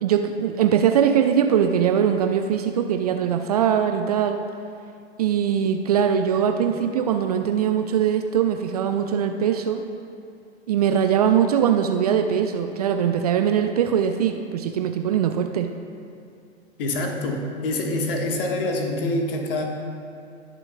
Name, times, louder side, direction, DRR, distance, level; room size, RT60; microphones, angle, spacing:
voice 1, 0.0-4.4 5.2-9.8 10.7-15.7, right 8 dB, 35° right, 6 dB, 0.4 m, -21 dB
voice 2, 16.8-19.6, left 2 dB, 50° left, 2 dB, 1.4 m, -26 dB
19.5 x 6.8 x 2.2 m, 2.4 s
figure-of-eight pair, 105°, 35 cm